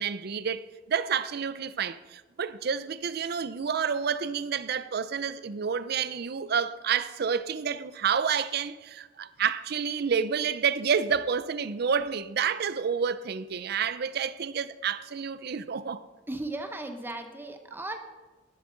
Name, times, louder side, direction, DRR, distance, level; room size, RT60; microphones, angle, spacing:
voice 1, 0.0-16.1, right 6 dB, 60° right, 0.5 m, -29 dB
voice 2, 16.3-18.0, right 2 dB, 10° right, 0.7 m, -36 dB
11.0 x 11.0 x 3.8 m
head